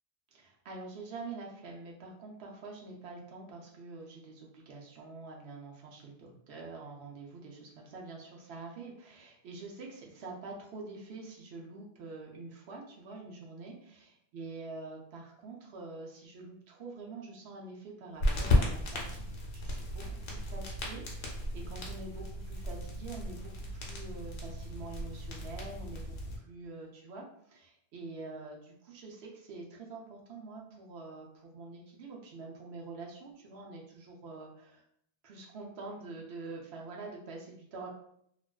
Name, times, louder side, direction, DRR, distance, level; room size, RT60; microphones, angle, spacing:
voice 1, 0.3-19.3 19.5-22.2 22.5-34.8 35.2-37.9, right 3 dB, 75° right, -1 dB, 0.9 m, -46 dB
sound 1, 18.2-26.4, left 1 dB, 80° left, 0.9 m, -34 dB
2.4 x 2.3 x 2.2 m, 0.70 s
omnidirectional pair, 1.1 m